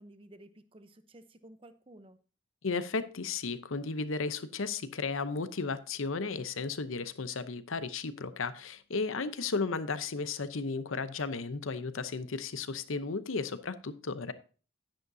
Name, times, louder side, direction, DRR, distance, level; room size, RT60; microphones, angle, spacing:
voice 1, 0.0-2.2 9.2-9.7, right 1 dB, 25° right, 11 dB, 0.7 m, -54 dB
voice 2, 2.6-14.3, left 4 dB, 75° left, 13 dB, 0.8 m, -34 dB
11.0 x 10.0 x 2.7 m, 0.37 s
head